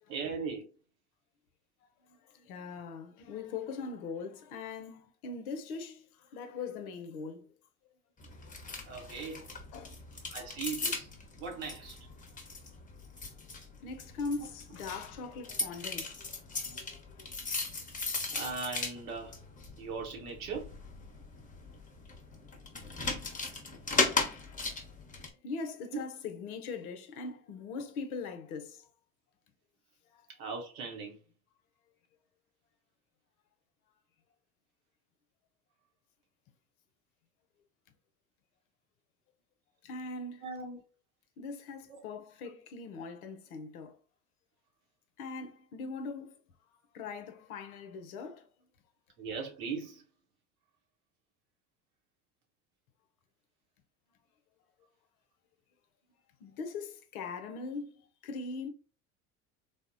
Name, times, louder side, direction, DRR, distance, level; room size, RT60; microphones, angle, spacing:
voice 1, 0.1-0.7 8.9-9.5 10.3-11.1 11.4-12.0 18.3-19.4 19.8-20.7 25.9-26.0 30.4-31.2 40.4-40.8 41.9-42.0 49.2-50.0, right 5 dB, 80° right, 1.0 m, -38 dB
voice 2, 2.1-7.5 8.9-9.2 9.7-10.0 13.8-17.8 24.2-24.3 24.6-24.7 25.4-28.9 30.1-30.3 39.8-40.4 41.4-44.0 45.2-46.4 46.9-48.5 56.4-58.7, left 4 dB, 80° left, 0.7 m, -41 dB
sound 1, 8.2-25.3, left 3 dB, 20° left, 0.7 m, -38 dB
3.4 x 2.1 x 2.4 m
hypercardioid pair, 75°, 43 cm